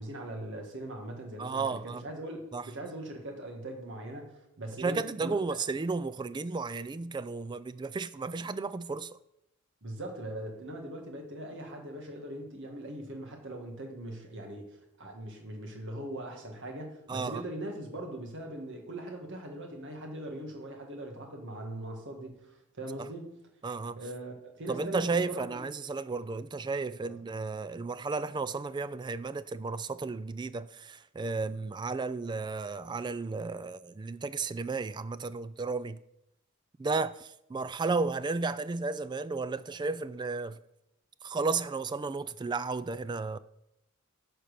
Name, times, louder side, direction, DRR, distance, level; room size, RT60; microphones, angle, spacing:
voice 1, 0.0-5.4 9.8-23.4 24.0-25.6 27.0-27.2, right 1 dB, 60° right, 1.9 m, -41 dB
voice 2, 1.4-2.0 2.5-2.7 4.8-9.1 17.1-17.4 23.6-24.0 24.7-36.0 36.8-40.6 41.2-43.4, right 4 dB, 20° right, 0.3 m, -33 dB
11.5 x 4.4 x 6.8 m
head